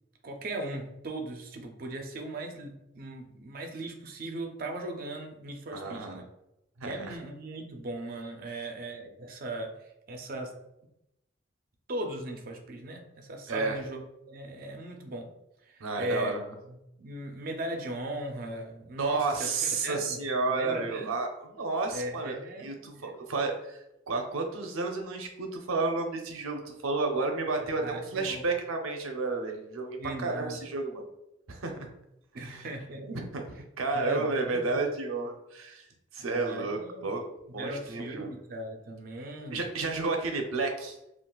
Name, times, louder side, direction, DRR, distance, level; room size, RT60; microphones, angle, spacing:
voice 1, 0.2-6.1 6.8-10.5 11.9-14.0 14.3-15.3 15.6-16.4 16.7-20.2 20.5-21.1 21.9-23.1 27.8-28.4 30.0-30.6 32.3-33.2 33.9-34.8 36.2-37.1 37.6-39.6, right 1 dB, 45° right, 3 dB, 0.5 m, -38 dB
voice 2, 5.7-6.2 6.8-7.2 13.5-13.8 15.8-16.5 19.0-31.0 31.5-31.9 32.3-32.7 33.1-33.4 33.8-35.8 36.1-37.2 37.5-38.3 39.5-41.0, right 3 dB, 90° right, 3 dB, 0.6 m, -31 dB
3.7 x 2.4 x 2.3 m, 0.85 s
head